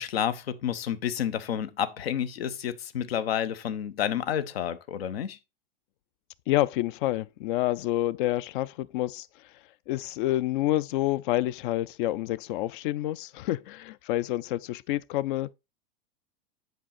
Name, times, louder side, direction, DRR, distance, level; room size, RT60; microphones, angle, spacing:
voice 1, 0.0-5.4, left 9 dB, 80° left, 0.9 m, -30 dB
voice 2, 6.5-9.3 9.9-15.5, left 15 dB, 60° left, 0.5 m, -28 dB
7.7 x 5.2 x 4.1 m
hypercardioid pair, 110°, 30 cm